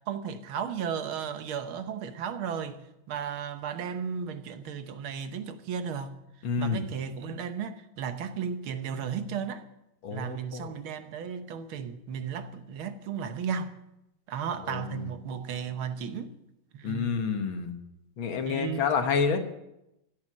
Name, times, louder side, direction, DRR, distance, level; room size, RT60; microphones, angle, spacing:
voice 1, 0.1-6.2 6.6-9.6 10.1-13.7 14.3-16.3 16.7-17.1 18.4-18.8, right 7 dB, 80° right, 1.8 m, -34 dB
voice 2, 6.4-6.9 10.0-10.7 14.6-15.0 16.8-17.8 18.2-19.4, left 5 dB, 75° left, 2.1 m, -29 dB
16.0 x 8.6 x 7.4 m
omnidirectional pair, 2.2 m